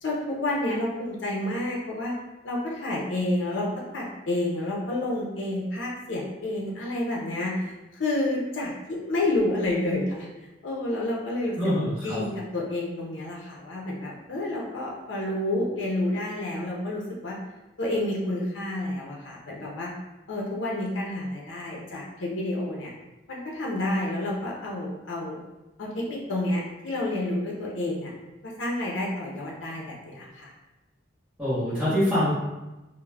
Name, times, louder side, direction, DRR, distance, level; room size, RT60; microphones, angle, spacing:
voice 1, 0.0-2.1 2.4-7.7 8.0-10.3 10.6-11.6 12.0-17.4 17.8-19.9 20.3-22.9 23.3-25.4 25.8-28.1 28.4-30.5, left 1 dB, 75° left, -3 dB, 0.5 m, -29 dB
voice 2, 11.6-12.2 31.4-32.3, equal, 5° right, -12 dB, 0.8 m, -24 dB
2.3 x 2.0 x 3.2 m, 1.1 s
head